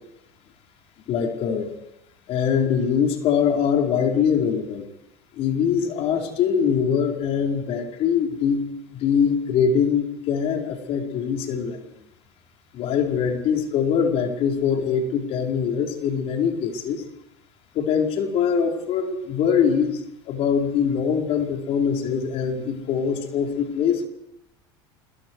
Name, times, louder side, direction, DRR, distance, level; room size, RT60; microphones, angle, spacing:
voice 1, 1.1-1.7 2.3-4.8 5.4-8.6 8.9-11.8 12.7-17.0 17.7-20.0 20.3-24.1, left 7 dB, 50° left, 2 dB, 5.0 m, -23 dB
27.5 x 22.5 x 4.9 m, 0.88 s
supercardioid pair, 115°, 13 cm